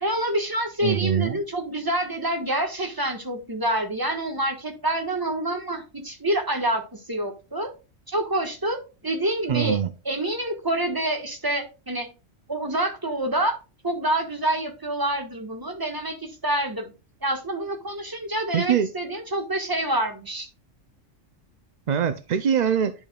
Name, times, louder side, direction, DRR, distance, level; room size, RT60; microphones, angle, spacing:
voice 1, 0.0-7.7 8.1-8.8 9.0-9.8 10.0-12.1 12.5-13.5 13.8-16.9 17.2-20.5, right 1 dB, 15° right, 1.4 m, -27 dB
voice 2, 0.8-1.4 9.5-9.9 18.5-18.9 21.9-22.9, right 8 dB, 70° right, 0.4 m, -23 dB
10.5 x 5.3 x 2.3 m
omnidirectional pair, 1.4 m